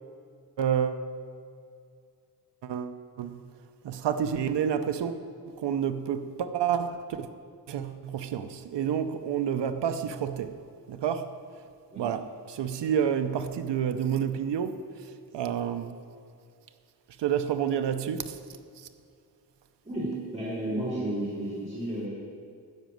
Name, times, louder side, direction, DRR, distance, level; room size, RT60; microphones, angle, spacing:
voice 1, 0.6-1.1 2.6-3.4 3.8-5.2 5.5-7.3 7.7-10.5 10.9-11.3 12.0-16.0 17.2-18.4 18.8-18.9, right 8 dB, 80° right, 8 dB, 0.7 m, -29 dB
voice 2, 19.8-22.1, right 1 dB, 15° right, -11 dB, 3.6 m, -32 dB
13.0 x 5.3 x 9.1 m, 2.3 s
wide cardioid pair, 140°, 41 cm